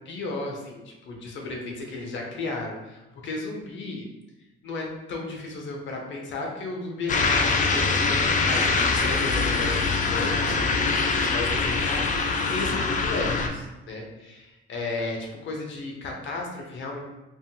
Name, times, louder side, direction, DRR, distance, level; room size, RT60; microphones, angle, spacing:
voice 1, 0.1-4.1 4.6-15.2 15.4-17.0, left 3 dB, 70° left, 1 dB, 0.7 m, -34 dB
sound 1, 7.1-13.5, left 4 dB, 40° left, 0.4 m, -23 dB
3.5 x 2.1 x 2.3 m, 1.0 s
cardioid pair, 90°, 20 cm